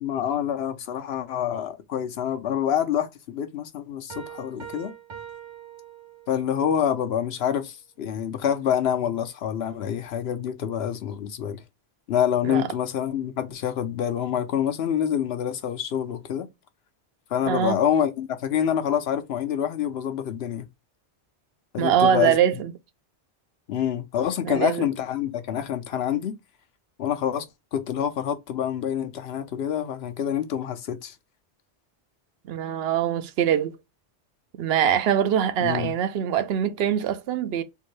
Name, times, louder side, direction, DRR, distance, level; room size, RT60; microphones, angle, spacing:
voice 1, 0.0-4.9 6.3-11.6 12.1-16.5 17.3-20.7 21.7-22.4 23.7-26.3 27.0-27.4 27.7-31.1 35.6-35.9, left 9 dB, 70° left, 0.9 m, -26 dB
Piano, 4.1-6.6, right 8 dB, 45° right, 0.4 m, -42 dB
voice 2, 17.5-17.8 21.8-22.7 24.4-24.8 32.5-33.8 34.6-37.6, right 9 dB, 70° right, 0.8 m, -23 dB
3.6 x 2.6 x 3.1 m
omnidirectional pair, 1.1 m